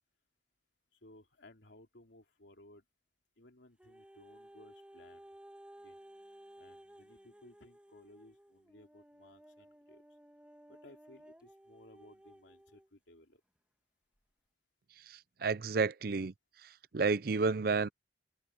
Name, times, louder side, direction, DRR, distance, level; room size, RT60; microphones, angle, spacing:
voice 1, 0.9-2.8 3.4-5.3 5.8-6.0 6.6-10.0 10.7-13.4, left 1 dB, 85° left, 3.2 m, -59 dB
sound 1, 3.8-12.9 13.6-13.7, right 1 dB, 5° right, 1.8 m, -57 dB
voice 2, 15.1-16.3 16.6-17.9, right 4 dB, 55° right, 0.5 m, -31 dB
head